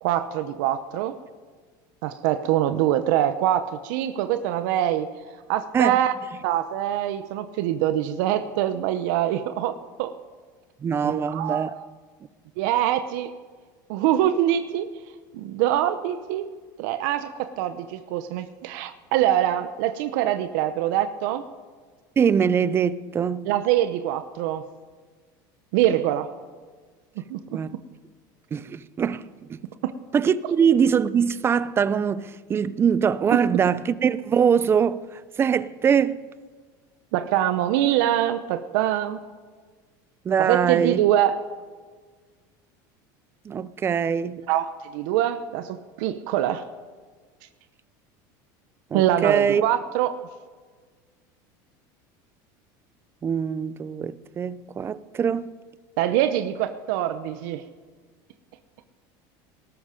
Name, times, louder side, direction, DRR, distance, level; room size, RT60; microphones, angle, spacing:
voice 1, 0.0-1.2 2.0-5.1 5.5-6.1 6.4-10.1 11.0-11.8 12.6-13.3 13.9-14.9 15.3-16.5 16.8-21.4 23.5-24.6 25.7-26.3 27.2-27.6 29.8-29.9 37.1-39.2 40.4-41.3 44.5-46.6 48.9-50.2 56.0-57.6, right 12 dB, 70° right, 0.8 m, -24 dB
voice 2, 10.8-11.8 22.2-23.5 27.5-27.8 28.5-29.2 29.5-29.6 30.1-36.2 40.2-41.0 43.4-44.4 48.9-49.6 53.2-55.5, right 7 dB, 25° right, 0.5 m, -23 dB
18.5 x 13.0 x 5.1 m
supercardioid pair, 135°, 10 cm